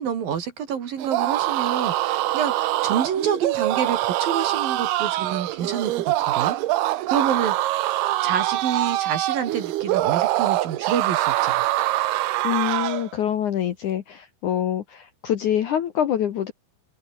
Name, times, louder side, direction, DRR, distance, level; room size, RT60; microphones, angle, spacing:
voice 1, 0.0-6.6 7.1-7.8 8.2-11.8, right 8 dB, 60° right, 3.9 m, -28 dB
sound 1, 1.0-13.1, right 15 dB, 75° right, 2.9 m, -24 dB
voice 2, 12.4-16.5, left 10 dB, 60° left, 2.2 m, -25 dB
open air
omnidirectional pair, 4.9 m